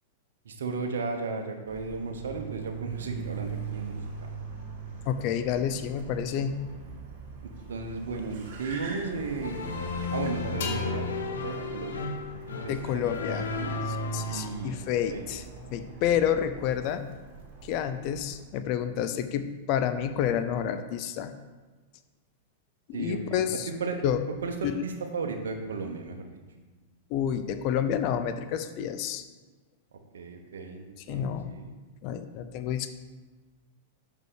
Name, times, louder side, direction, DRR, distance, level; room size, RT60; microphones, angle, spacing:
voice 1, 0.4-4.3 7.4-9.6 10.1-12.1 12.5-13.7 14.3-14.8 15.1-15.3 22.9-24.0 24.4-26.3 30.1-31.7, right 4 dB, 80° right, 3 dB, 1.0 m, -35 dB
Car, 1.7-18.4, right 5 dB, 55° right, 2.4 m, -42 dB
voice 2, 5.1-6.6 12.7-13.5 13.9-15.4 15.7-17.0 17.6-21.3 23.0-23.7 24.0-24.2 24.6-24.7 27.1-29.2 31.1-31.5 32.0-32.9, left 9 dB, 50° left, 10 dB, 0.6 m, -29 dB
sound 1, 9.4-14.5, left 3 dB, 90° left, 0.9 m, -34 dB
sound 2, 10.6-14.2, left 5 dB, 70° left, 1.3 m, -39 dB
6.3 x 5.4 x 6.4 m, 1.3 s
hypercardioid pair, 115°, 0 cm